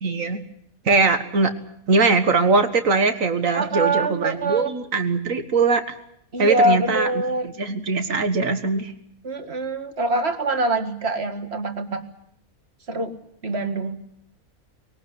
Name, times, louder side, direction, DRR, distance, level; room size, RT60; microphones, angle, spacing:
voice 1, 0.0-0.4 0.9-1.5 1.9-6.0 6.4-7.1 7.4-8.9, right 4 dB, 65° right, 9 dB, 1.9 m, -21 dB
voice 2, 3.5-4.7 6.3-7.5 9.2-12.0 12.9-13.2 13.4-14.0, right 2 dB, 45° right, 8 dB, 2.1 m, -24 dB
22.0 x 18.5 x 9.5 m, 0.74 s
omnidirectional pair, 1.5 m